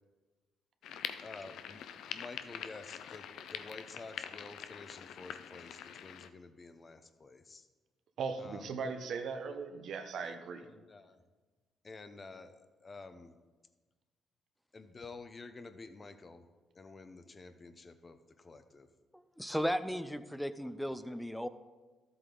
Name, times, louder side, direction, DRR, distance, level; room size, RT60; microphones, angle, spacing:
sound 1, 0.8-6.3, left 9 dB, 80° left, 0.5 m, -44 dB
voice 1, 1.2-1.8 2.1-7.7 8.4-8.7 10.2-10.4 10.6-11.2 11.8-13.4 14.7-16.5 16.7-18.9 20.6-21.0, left 3 dB, 30° left, 10 dB, 0.8 m, -50 dB
voice 2, 8.2-10.7, right 5 dB, 65° right, 6 dB, 1.1 m, -38 dB
voice 3, 19.1-21.5, equal, ahead, 12 dB, 0.6 m, -36 dB
13.0 x 7.8 x 3.9 m, 1.3 s
cardioid pair, 90°, 0 cm